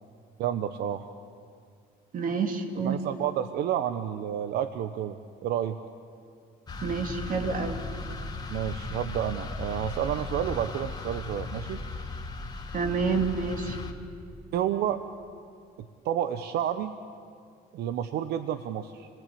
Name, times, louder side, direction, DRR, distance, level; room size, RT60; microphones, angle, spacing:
voice 1, 0.4-1.1 2.8-5.8 8.5-11.8 14.5-15.0 15.8-16.9 17.7-19.1, right 10 dB, 75° right, 10 dB, 0.9 m, -30 dB
voice 2, 2.1-3.0 6.8-7.8 12.7-13.8, right 5 dB, 55° right, 6 dB, 2.7 m, -28 dB
sound 1, 6.7-13.9, left 3 dB, 25° left, 2.2 m, -37 dB
29.0 x 19.0 x 8.6 m, 2.3 s
cardioid pair, 110°, 17 cm